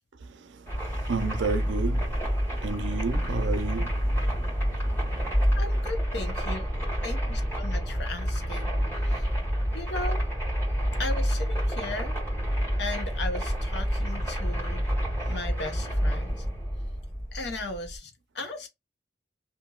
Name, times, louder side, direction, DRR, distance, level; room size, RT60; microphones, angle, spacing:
sound 1, 0.7-18.0, equal, 10° left, 1.5 m, -28 dB
voice 1, 0.7-2.1 2.6-3.9, right 4 dB, 80° right, 0.5 m, -31 dB
voice 2, 5.6-6.6 7.0-8.7 9.0-9.3 9.7-10.2 11.0-12.2 12.8-14.9 15.3-16.4 17.3-18.7, left 2 dB, 65° left, 0.8 m, -36 dB
2.8 x 2.6 x 2.3 m
head